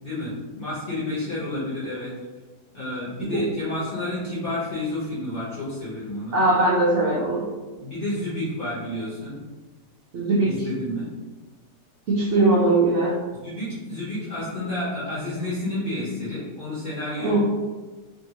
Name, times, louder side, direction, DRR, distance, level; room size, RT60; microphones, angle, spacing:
voice 1, 0.0-2.1 2.7-6.4 7.7-9.4 10.4-11.1 13.3-17.4, left 1 dB, 50° left, -9 dB, 0.7 m, -30 dB
voice 2, 6.3-7.4 10.1-10.5 12.1-13.2 17.2-17.4, right 2 dB, 80° right, -5 dB, 0.6 m, -20 dB
2.7 x 2.6 x 2.8 m, 1.3 s
omnidirectional pair, 1.9 m